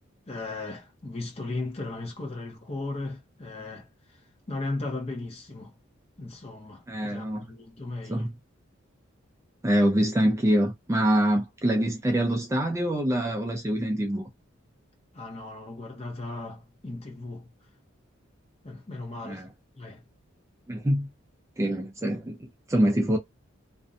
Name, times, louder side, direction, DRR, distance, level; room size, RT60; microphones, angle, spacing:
voice 1, 0.3-3.9 4.5-5.7 6.2-8.3 15.1-17.5 18.6-19.4 19.8-20.0, left 2 dB, 30° left, 0.7 m, -36 dB
voice 2, 6.9-7.4 8.1-8.3 9.6-14.3 19.2-19.5 20.7-21.1 21.6-23.2, right 1 dB, 15° right, 0.3 m, -25 dB
2.5 x 2.2 x 2.5 m
head